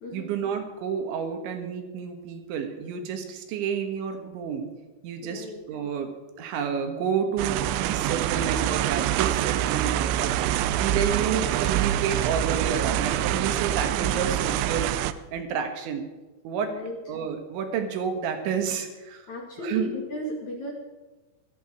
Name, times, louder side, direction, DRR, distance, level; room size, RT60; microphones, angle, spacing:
voice 1, 0.1-4.7 5.0-6.1 6.4-16.1 16.5-16.7 17.1-19.2 19.6-19.9, right 7 dB, 70° right, 5 dB, 3.6 m, -30 dB
voice 2, 5.2-5.6 16.6-17.0 19.3-20.7, equal, 50° left, 0 dB, 2.5 m, -35 dB
sound 1, 7.4-15.1, right 12 dB, 85° right, 2.4 m, -25 dB
16.5 x 13.5 x 4.9 m, 1.2 s
omnidirectional pair, 5.7 m